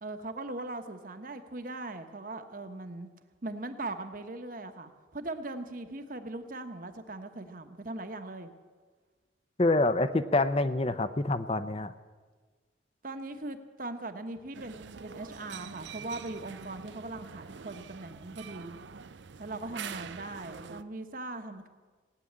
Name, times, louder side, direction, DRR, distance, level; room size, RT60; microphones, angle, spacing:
voice 1, 0.0-3.1 3.4-8.5 13.0-18.8 19.4-21.7, right 2 dB, 45° right, 8 dB, 1.1 m, -40 dB
voice 2, 9.6-11.9, left 2 dB, 30° left, 13 dB, 0.6 m, -26 dB
sound 1, 14.5-20.8, right 6 dB, 75° right, 0.5 m, -45 dB
17.5 x 9.3 x 8.7 m, 1.4 s
head